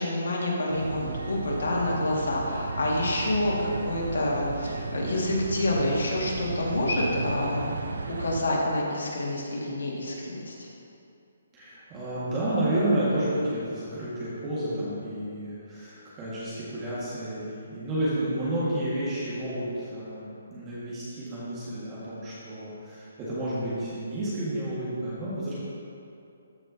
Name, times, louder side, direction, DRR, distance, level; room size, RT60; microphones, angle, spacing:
voice 1, 0.0-7.7 8.2-10.7, left 1 dB, 80° left, -3 dB, 2.0 m, -28 dB
sound 1, 0.7-8.4, right 3 dB, 80° right, 0.6 m, -34 dB
voice 2, 11.5-25.5, right 1 dB, 20° right, -10 dB, 1.8 m, -30 dB
14.0 x 5.3 x 2.8 m, 2.6 s
hypercardioid pair, 155°, 0 cm